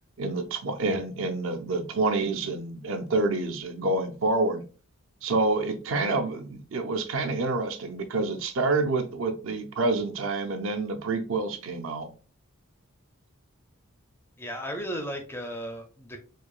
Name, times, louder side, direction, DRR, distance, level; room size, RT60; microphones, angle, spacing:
voice 1, 0.2-4.6 5.2-12.1, right 3 dB, 60° right, 0.5 m, -28 dB
voice 2, 14.4-16.2, equal, 10° left, 0.4 m, -35 dB
4.7 x 2.3 x 2.3 m
head